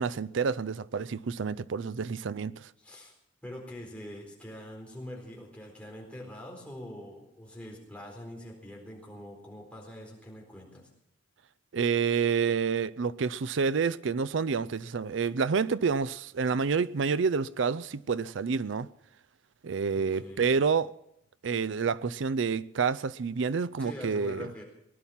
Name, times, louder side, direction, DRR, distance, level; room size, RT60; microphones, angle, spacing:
voice 1, 0.0-2.7 11.7-18.9 19.6-20.9 21.4-24.5, right 5 dB, 70° right, 0.5 m, -28 dB
voice 2, 2.8-3.1 3.4-10.9 19.9-20.5 23.8-24.6, left 1 dB, 5° left, 4.1 m, -44 dB
19.0 x 11.0 x 5.7 m
head